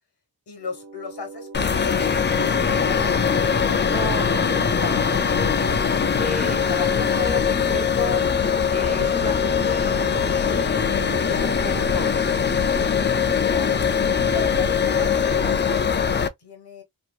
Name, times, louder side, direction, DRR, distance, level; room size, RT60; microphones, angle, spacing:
voice 1, 0.5-3.2 11.3-11.6 13.4-13.8 14.3-16.8, left 5 dB, 75° left, 1.4 m, -37 dB
sound 1, 0.6-15.6, right 6 dB, 65° right, 0.7 m, -40 dB
sound 2, 1.5-16.3, left 6 dB, 30° left, 0.4 m, -21 dB
voice 2, 3.8-8.2 8.7-10.0 10.4-12.2, left 1 dB, 15° right, 1.0 m, -33 dB
2.9 x 2.9 x 2.3 m
wide cardioid pair, 100°, 41 cm